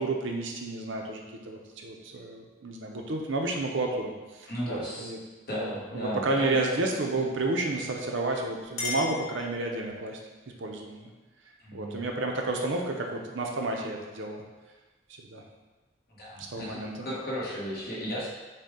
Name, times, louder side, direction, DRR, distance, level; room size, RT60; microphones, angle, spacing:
voice 1, 0.0-5.2 5.6-10.2 10.6-11.1 11.7-14.4 15.2-15.4 16.4-17.1, right 2 dB, 75° right, 1 dB, 0.6 m, -31 dB
voice 2, 4.5-5.1 5.5-6.6 11.6-12.1 16.1-18.3, equal, 50° left, -7 dB, 1.3 m, -34 dB
Chink clink, 8.2-10.1, left 4 dB, 85° left, 1.1 m, -37 dB
6.5 x 2.2 x 3.6 m, 1.2 s
head